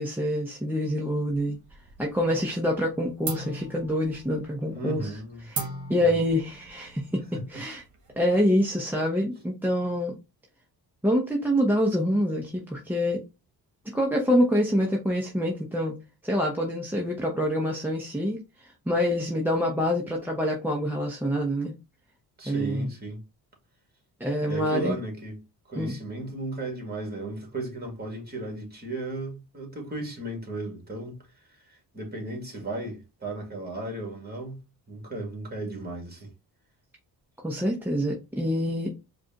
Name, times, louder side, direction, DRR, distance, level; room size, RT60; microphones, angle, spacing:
voice 1, 0.0-1.6 2.0-5.1 5.5-7.2 7.5-7.8 8.2-10.2 11.0-13.2 13.9-16.0 16.2-21.7 22.4-22.9 24.2-25.0 25.8-25.9 37.4-38.9, equal, 5° right, 0.8 m, -26 dB
sound 1, 1.3-2.2 2.5-2.9 3.2-8.4, right 3 dB, 45° right, 1.4 m, -39 dB
voice 2, 4.7-5.5 6.0-6.2 7.3-7.4 22.4-23.2 24.5-25.4 25.7-31.2 31.5-34.6 34.9-36.3, right 2 dB, 25° right, 2.0 m, -35 dB
4.8 x 2.5 x 2.8 m
cardioid pair, 95°, 40 cm